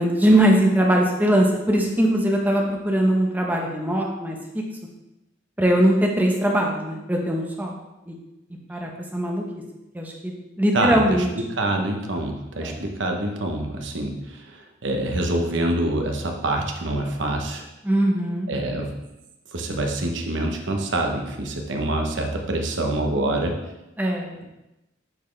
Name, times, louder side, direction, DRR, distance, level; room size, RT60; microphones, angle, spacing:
voice 1, 0.0-4.4 5.6-7.8 8.1-8.2 8.7-9.4 9.9-11.3 12.6-12.8 17.8-18.5 24.0-24.4, right 1 dB, 10° right, 0 dB, 0.9 m, -21 dB
voice 2, 10.7-17.6 18.5-19.0 19.5-23.6, right 1 dB, 65° right, 2 dB, 0.9 m, -26 dB
8.9 x 4.3 x 3.3 m, 0.96 s
head